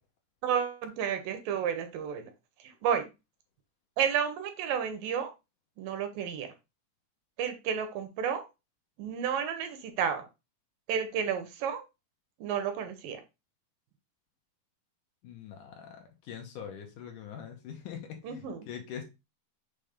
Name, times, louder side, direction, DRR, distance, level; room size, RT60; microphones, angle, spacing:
voice 1, 0.4-2.3 2.8-3.0 4.0-5.3 5.8-6.5 7.4-8.4 9.0-10.2 10.9-11.8 12.4-13.2 18.2-18.6, right 8 dB, 80° right, 8 dB, 2.4 m, -31 dB
voice 2, 15.2-16.0 16.3-19.0, left 8 dB, 70° left, 3 dB, 2.5 m, -43 dB
6.7 x 3.2 x 5.1 m, 0.25 s
omnidirectional pair, 4.3 m